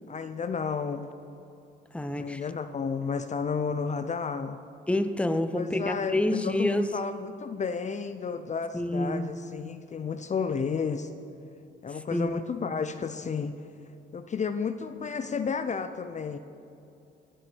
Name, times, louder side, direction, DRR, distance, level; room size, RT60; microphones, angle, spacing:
voice 1, 0.1-1.1 2.2-4.6 5.5-6.2 6.4-11.1 11.8-13.5 14.1-16.4, left 5 dB, 35° left, 10 dB, 0.6 m, -32 dB
voice 2, 1.9-2.4 4.9-6.9 8.7-9.3 12.1-12.3, left 1 dB, 5° left, 10 dB, 0.8 m, -27 dB
21.0 x 7.9 x 6.3 m, 2.7 s
cardioid pair, 90°, 20 cm